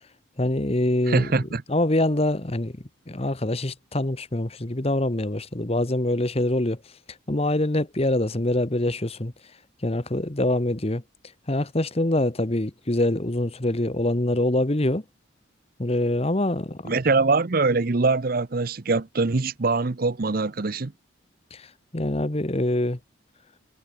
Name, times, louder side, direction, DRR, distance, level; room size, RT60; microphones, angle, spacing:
voice 1, 0.4-2.8 3.1-6.8 7.3-9.3 9.8-11.0 11.5-15.0 15.8-16.9 21.5-23.0, left 1 dB, 30° left, 1.3 m, -25 dB
voice 2, 1.1-1.6 16.9-20.9, right 3 dB, 50° right, 0.7 m, -23 dB
head